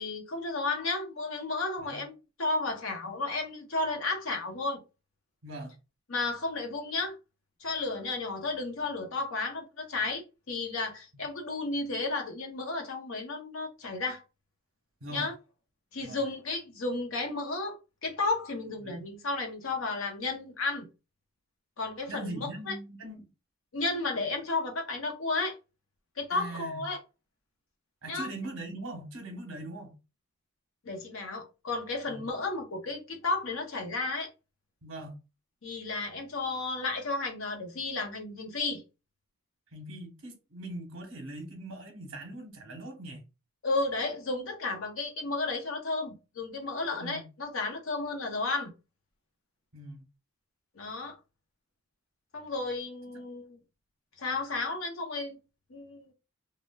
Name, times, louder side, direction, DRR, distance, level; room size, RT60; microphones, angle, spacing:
voice 1, 0.0-4.8 6.1-7.1 7.6-14.2 15.1-15.3 15.9-20.8 21.8-22.4 22.7-22.8 23.7-25.6 26.2-27.0 28.1-28.3 30.8-34.3 35.6-38.8 43.6-48.7 50.8-51.2 52.3-53.6 54.2-55.4 55.7-56.1, left 3 dB, 60° left, 0.7 m, -33 dB
voice 2, 5.4-5.7 15.0-15.3 16.0-16.2 18.8-19.1 22.1-23.3 26.3-26.9 28.0-30.0 32.1-32.3 34.8-35.2 39.7-43.2 47.0-47.2 49.7-50.0, right 1 dB, 60° right, 0.9 m, -41 dB
3.2 x 2.2 x 2.2 m
head